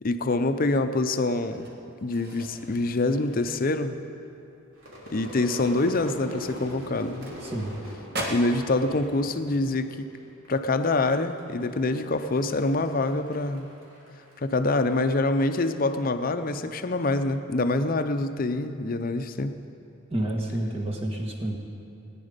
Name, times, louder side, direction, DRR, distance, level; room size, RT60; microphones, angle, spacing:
voice 1, 0.0-1.7 2.0-4.0 5.1-7.3 8.3-9.9 10.5-13.7 14.4-19.5, left 2 dB, 45° left, 9 dB, 0.6 m, -25 dB
sound 1, 1.4-4.1 4.4-4.7 5.1-5.2 5.8-7.8 8.1-8.6, right 1 dB, 50° right, 1.7 m, -39 dB
Crowd / Fireworks, 4.8-10.1 10.4-11.1 11.4-14.9, equal, 70° right, 3.7 m, -42 dB
voice 2, 7.4-7.8 20.1-21.6, right 1 dB, 30° right, 0 dB, 1.5 m, -29 dB
19.0 x 10.0 x 5.2 m, 2.8 s
head